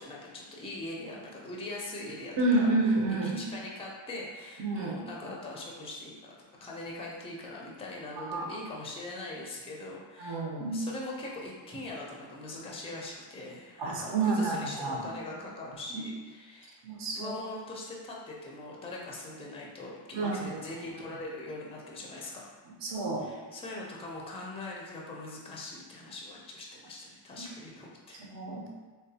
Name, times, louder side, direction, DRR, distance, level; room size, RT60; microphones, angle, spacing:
voice 1, 0.0-2.7 3.1-6.4 6.6-10.4 10.7-16.8 17.2-22.6 23.2-28.2, left 2 dB, 15° left, -3 dB, 0.4 m, -41 dB
voice 2, 2.4-3.5 4.6-5.0 8.2-8.4 10.2-10.8 13.8-15.1 15.9-16.0 16.8-17.3 20.1-20.6 22.8-23.2 28.3-28.7, right 2 dB, 60° right, -1 dB, 0.7 m, -29 dB
3.8 x 2.2 x 2.7 m, 1.4 s
wide cardioid pair, 150°, 48 cm